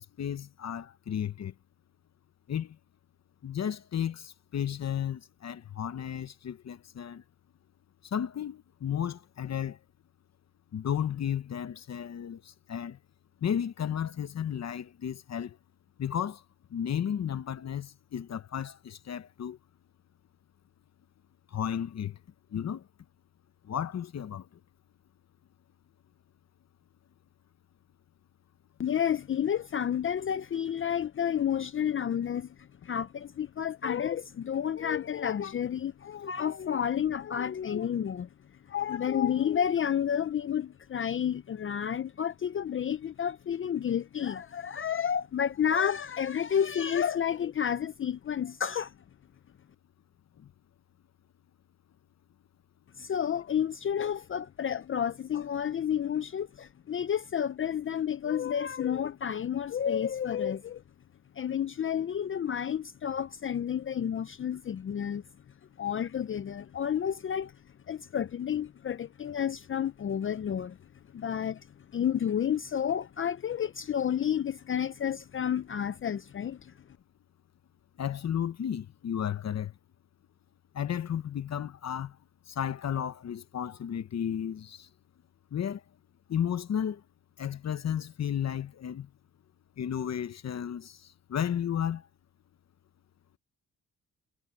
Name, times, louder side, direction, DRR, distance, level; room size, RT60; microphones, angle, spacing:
voice 1, 0.0-1.5 2.5-2.8 3.4-7.2 8.1-9.8 10.7-13.0 13.4-15.6 16.0-16.4 16.7-19.6 21.5-22.2 22.5-22.8 23.7-24.5 78.0-79.7 80.7-82.2 82.5-84.9 85.5-85.8 86.3-87.0 87.4-89.1 89.8-91.0 91.3-92.0, left 9 dB, 60° left, 1.0 m, -33 dB
voice 2, 28.8-32.5 32.8-38.3 38.7-48.9 53.0-60.8 61.4-65.2 65.8-67.5 67.9-70.8 71.1-71.7 71.9-76.7, left 8 dB, 45° left, 0.5 m, -30 dB
cardioid pair, 85°, 30 cm